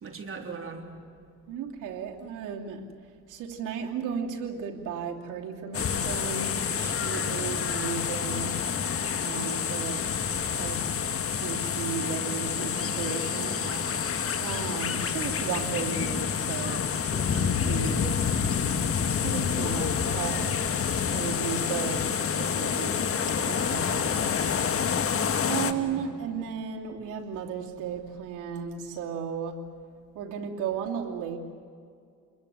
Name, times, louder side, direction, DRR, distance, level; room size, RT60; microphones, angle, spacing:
voice 1, 0.0-0.9 13.4-14.1 25.5-26.0, right 4 dB, 45° right, 3 dB, 3.6 m, -40 dB
voice 2, 1.5-2.8 3.3-8.6 9.2-10.0 10.5-10.8 11.3-13.6 14.4-16.8 17.1-18.2 19.2-20.6 21.1-22.0 22.4-23.1 23.4-24.1 25.4-29.6 30.1-31.4, right 7 dB, 90° right, 0 dB, 2.8 m, -34 dB
sound 1, 5.7-25.7, left 7 dB, 50° left, 1.6 m, -28 dB
28.5 x 21.5 x 9.4 m, 2.3 s
cardioid pair, 90°, 30 cm